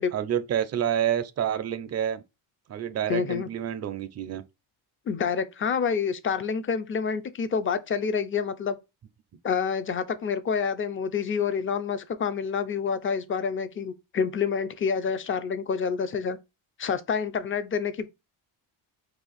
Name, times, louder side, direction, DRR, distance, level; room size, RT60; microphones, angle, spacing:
voice 1, 0.0-2.2 2.7-4.4, right 10 dB, 35° right, 0.4 m, -28 dB
voice 2, 3.1-3.5 5.1-8.8 9.4-16.4 16.8-18.1, left 6 dB, 30° left, 0.4 m, -28 dB
2.6 x 2.4 x 4.0 m
cardioid pair, 85°, 49 cm